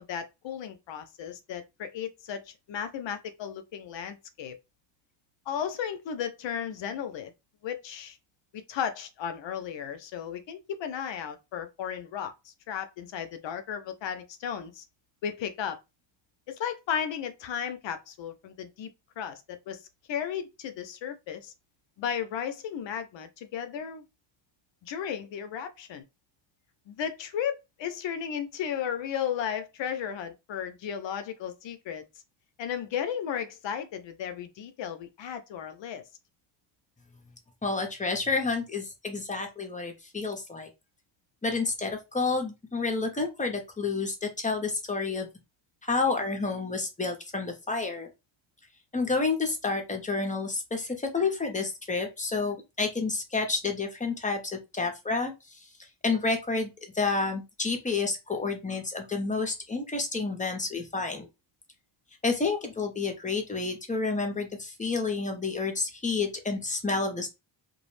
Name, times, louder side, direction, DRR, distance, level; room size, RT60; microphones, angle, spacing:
voice 1, 0.0-4.6 5.5-7.3 7.6-8.2 8.5-12.3 12.7-14.8 15.2-15.8 16.5-18.9 19.2-19.8 20.1-21.5 22.0-24.0 24.8-26.0 26.9-32.0 32.6-36.0, left 8 dB, 65° left, 0.6 m, -34 dB
voice 2, 37.6-40.7 41.4-45.3 45.8-48.1 48.9-55.3 56.0-61.3 62.2-67.3, left 4 dB, 15° left, 0.5 m, -29 dB
2.3 x 2.0 x 3.1 m
wide cardioid pair, 125°, 47 cm